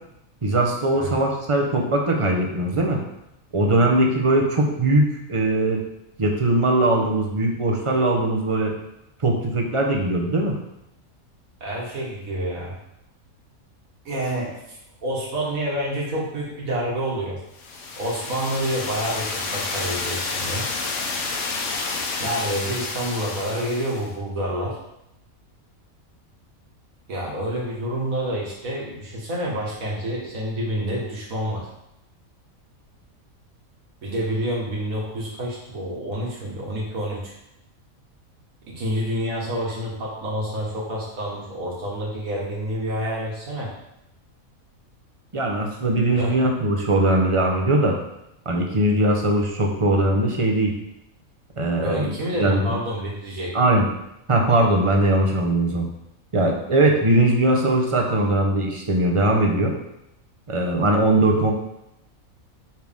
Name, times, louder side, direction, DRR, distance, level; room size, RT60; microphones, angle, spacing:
voice 1, 0.4-3.0 3.5-5.8 6.2-8.7 9.2-10.6 45.3-48.0 48.5-50.7 51.6-52.8 53.5-53.9 54.3-55.9 56.3-59.7 60.5-61.5, right 1 dB, 30° right, 1 dB, 0.8 m, -20 dB
voice 2, 11.6-12.7 14.1-17.4 18.0-20.7 22.2-24.8 27.1-31.7 34.0-37.3 38.7-43.7 46.1-46.3 51.8-53.5, equal, 80° right, -4 dB, 2.0 m, -28 dB
sound 1, 17.6-24.1, left 3 dB, 70° left, 1.1 m, -30 dB
5.9 x 4.7 x 3.6 m, 0.84 s
omnidirectional pair, 1.4 m